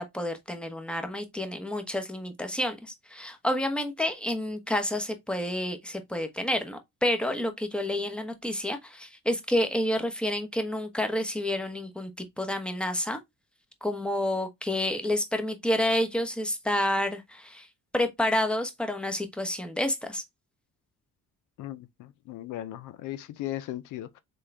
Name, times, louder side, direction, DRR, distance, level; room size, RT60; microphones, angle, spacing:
voice 1, 0.0-13.2 13.8-17.7 17.9-20.2, left 1 dB, 5° left, 1.0 m, -29 dB
voice 2, 21.6-24.2, left 14 dB, 90° left, 0.6 m, -37 dB
3.9 x 3.7 x 3.3 m
cardioid pair, 90°, 30 cm